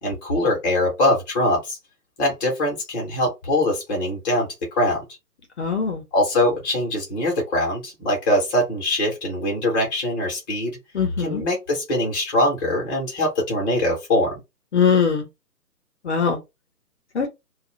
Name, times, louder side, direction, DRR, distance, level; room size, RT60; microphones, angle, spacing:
voice 1, 0.0-1.8 2.2-4.5 4.8-5.0 6.1-10.8 11.2-14.4, left 1 dB, 15° left, 0.9 m, -22 dB
voice 2, 5.6-6.0 10.9-11.4 14.7-15.3 16.0-16.4 17.1-17.3, left 6 dB, 45° left, 0.8 m, -21 dB
2.6 x 2.4 x 4.1 m
hypercardioid pair, 150°, 48 cm